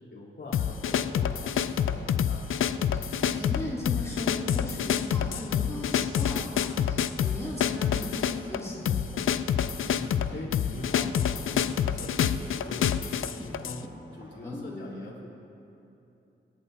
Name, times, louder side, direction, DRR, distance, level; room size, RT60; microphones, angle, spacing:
voice 1, 0.1-2.5 9.9-15.3, left 2 dB, 60° left, -5 dB, 3.4 m, -42 dB
sound 1, 0.5-13.8, left 9 dB, 80° left, 0.4 m, -27 dB
sound 2, 0.6-14.6, equal, 25° right, 1.8 m, -46 dB
voice 2, 3.3-9.0 14.4-14.9, left 1 dB, 15° left, -8 dB, 3.3 m, -38 dB
26.0 x 10.5 x 2.7 m, 2.8 s
wide cardioid pair, 90°, 21 cm